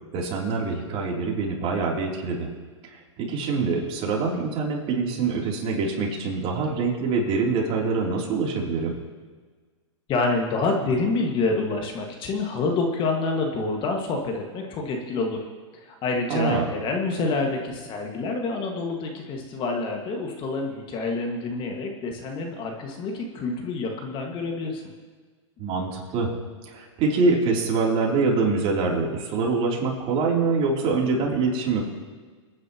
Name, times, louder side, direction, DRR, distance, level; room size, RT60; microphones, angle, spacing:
voice 1, 0.1-2.5 3.2-8.9 16.3-16.7 25.6-26.3 26.7-31.9, right 4 dB, 35° right, -2 dB, 3.4 m, -24 dB
voice 2, 10.1-15.4 15.7-24.8, left 3 dB, 30° left, 1 dB, 2.0 m, -27 dB
27.5 x 9.7 x 3.1 m, 1.5 s
hypercardioid pair, 125°, 16 cm